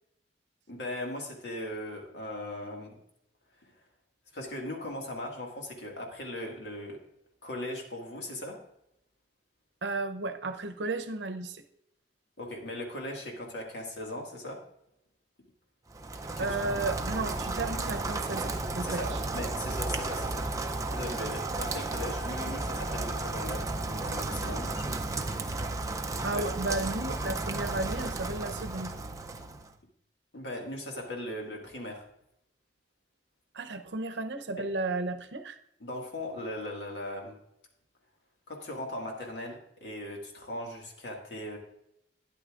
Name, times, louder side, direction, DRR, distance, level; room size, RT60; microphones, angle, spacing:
voice 1, 0.7-3.0 4.3-7.0 7.4-8.6 12.4-14.6 16.4-16.5 18.8-20.4 20.9-25.0 26.3-26.4 30.3-32.1 34.6-34.7 35.8-37.4 38.5-41.6, left 1 dB, 75° left, 1 dB, 1.9 m, -39 dB
voice 2, 9.8-11.6 16.4-19.2 26.2-28.9 33.5-35.6, right 2 dB, 80° right, 8 dB, 0.7 m, -33 dB
Rain, 15.9-29.7, right 2 dB, 20° right, 0.5 m, -33 dB
12.0 x 9.8 x 2.4 m, 0.78 s
head